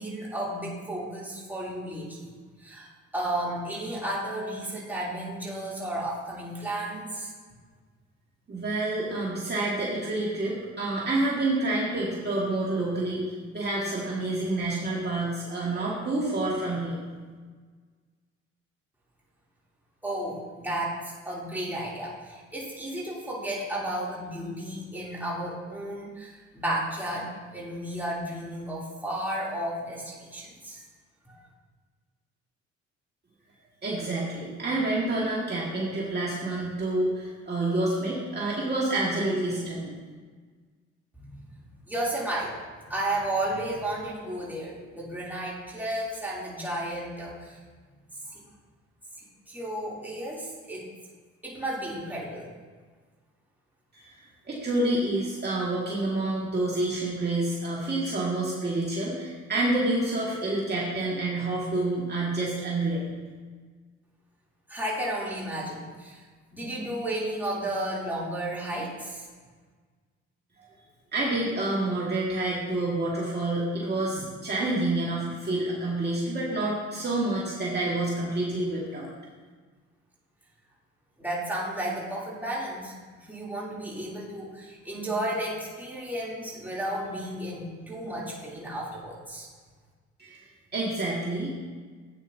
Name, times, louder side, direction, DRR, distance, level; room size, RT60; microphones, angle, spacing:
voice 1, 0.0-2.3 2.6-2.9 3.1-7.3 20.0-30.8 31.2-31.4 41.9-42.5 42.8-47.6 48.3-48.4 49.5-50.9 51.4-52.5 64.7-66.2 66.5-69.3 81.2-89.5, right 1 dB, 5° right, -6 dB, 3.0 m, -33 dB
voice 2, 8.5-17.0 33.8-39.9 53.9-54.2 54.5-63.1 71.1-79.1 90.2-90.4 90.7-91.5, right 2 dB, 35° right, -6 dB, 2.0 m, -28 dB
11.5 x 8.7 x 2.8 m, 1.5 s
cardioid pair, 90°, 30 cm